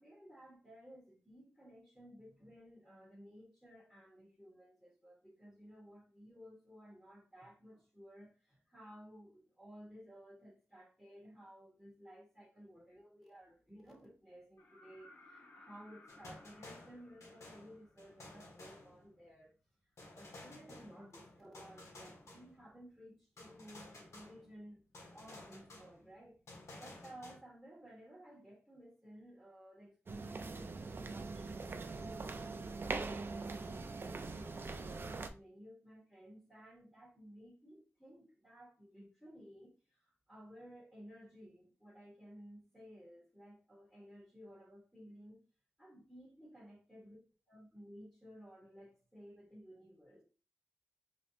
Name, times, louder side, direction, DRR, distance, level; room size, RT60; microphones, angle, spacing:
voice 1, 0.0-19.5 20.0-24.8 25.1-26.4 26.7-45.4 45.8-47.2 47.5-50.2, equal, ahead, 1.5 m, -56 dB
sound 1, 14.6-18.4 20.3-20.4, left 2 dB, 60° left, 1.4 m, -61 dB
sound 2, 16.1-19.4 20.0-22.8 23.4-24.7 24.9-27.4, left 2 dB, 80° left, 1.4 m, -55 dB
sound 3, 30.1-35.3, right 3 dB, 50° right, 0.5 m, -42 dB
4.9 x 2.9 x 2.7 m
wide cardioid pair, 80°, 5 cm